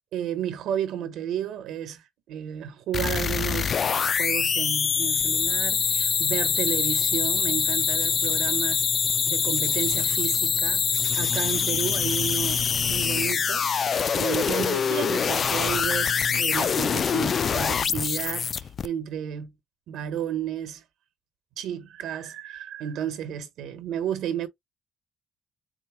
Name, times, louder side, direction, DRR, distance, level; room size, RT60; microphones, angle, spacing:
voice 1, 0.1-8.8 9.3-10.8 11.1-13.7 14.1-19.5 19.9-20.8 21.6-24.5, right 9 dB, 85° right, 1.0 m, -32 dB
sound 1, 2.9-18.9, left 6 dB, 50° left, 0.3 m, -24 dB
4.3 x 2.1 x 4.5 m
cardioid pair, 90°, 0 cm